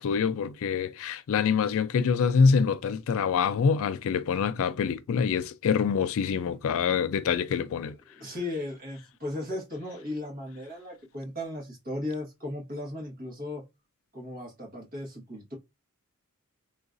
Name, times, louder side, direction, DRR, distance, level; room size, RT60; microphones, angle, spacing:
voice 1, 0.0-7.9, left 6 dB, 65° left, 0.4 m, -25 dB
voice 2, 7.8-13.6 14.1-15.5, left 1 dB, 45° right, 1.2 m, -36 dB
3.8 x 2.5 x 2.4 m
head